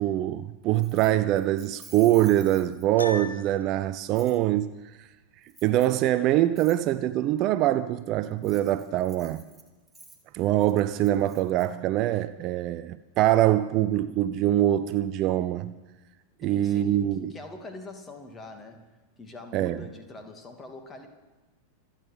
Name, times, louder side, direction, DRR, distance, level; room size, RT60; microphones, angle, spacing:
voice 1, 0.0-4.8 5.6-9.4 10.3-15.8 16.4-17.3 19.5-19.8, right 13 dB, 40° right, 0.5 m, -24 dB
Keys jangling, 0.8-3.1 4.2-4.4 5.5-6.0 6.6-6.8 8.3-11.7, right 2 dB, 5° right, 2.7 m, -51 dB
Piano, 3.0-3.8, left 3 dB, 75° left, 1.1 m, -36 dB
voice 2, 16.4-18.9 19.2-21.1, left 2 dB, 20° left, 2.6 m, -44 dB
26.0 x 9.0 x 5.9 m
figure-of-eight pair, 90°, 0 cm